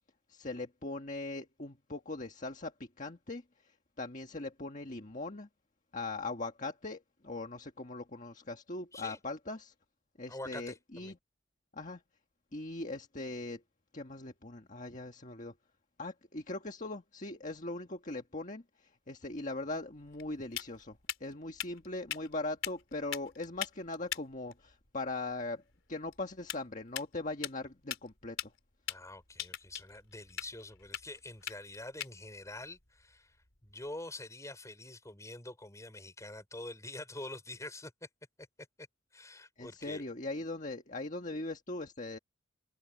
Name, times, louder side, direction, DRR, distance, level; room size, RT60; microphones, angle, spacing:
voice 1, 0.3-5.5 5.9-9.7 10.2-11.2 11.7-12.0 12.5-13.6 13.9-15.5 16.0-25.6 25.9-28.5 39.6-42.2, left 2 dB, 35° left, 1.6 m, -40 dB
voice 2, 10.3-11.1 28.9-33.4 33.6-37.9 38.8-38.9 39.1-40.0, left 2 dB, 15° left, 5.2 m, -46 dB
sound 1, 19.3-34.0, left 11 dB, 65° left, 4.3 m, -44 dB
head